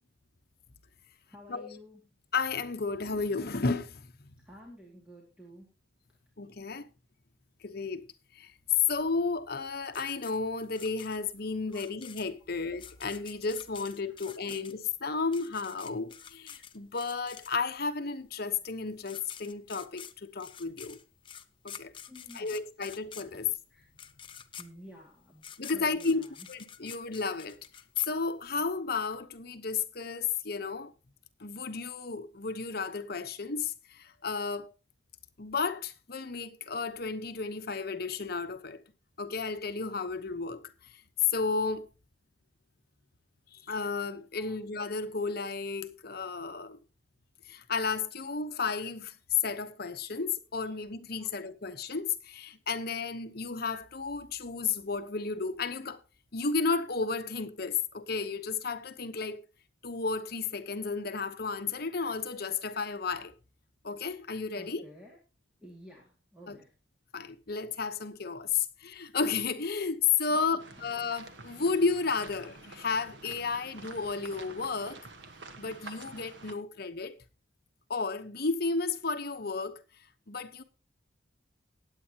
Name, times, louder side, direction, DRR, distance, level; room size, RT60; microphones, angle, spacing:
voice 1, 1.3-2.0 4.4-5.7 11.7-11.8 14.0-14.5 22.1-22.6 23.7-23.9 24.6-25.4 25.7-26.5 44.4-44.6 51.2-51.3 64.5-65.2 65.6-66.7 70.3-70.6, equal, 5° right, 2.4 m, -52 dB
voice 2, 2.3-4.1 6.4-6.9 7.6-8.1 8.3-8.5 8.9-21.0 21.6-21.9 22.3-23.5 25.6-26.2 26.5-27.6 28.0-30.9 31.4-34.7 35.4-38.8 39.2-40.7 41.3-41.9 43.7-46.8 47.5-49.2 49.4-56.0 56.3-59.4 59.8-63.3 63.8-64.8 66.5-66.6 67.1-75.0 75.6-77.2 77.9-79.8 80.3-80.6, left 4 dB, 55° left, 1.0 m, -33 dB
sound 1, 9.9-17.9 18.7-18.8 19.0-28.7, left 8 dB, 25° left, 0.7 m, -48 dB
sound 2, 70.6-76.5, right 3 dB, 80° right, 1.4 m, -48 dB
19.0 x 8.3 x 2.9 m
head